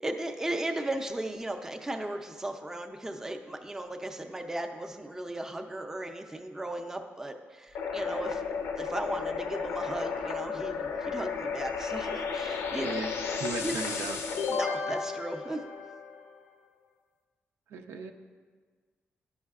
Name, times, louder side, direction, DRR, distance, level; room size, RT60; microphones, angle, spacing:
voice 1, 0.0-8.4 8.8-13.0 13.6-13.7 14.5-15.6, right 1 dB, 10° right, 4 dB, 0.4 m, -36 dB
sound 1, 7.7-16.4, left 5 dB, 90° left, 0.6 m, -33 dB
voice 2, 12.8-13.1 13.4-14.2 17.7-18.1, right 4 dB, 90° right, 5 dB, 0.5 m, -36 dB
11.5 x 5.5 x 2.4 m, 1.5 s
cardioid pair, 130°, 4 cm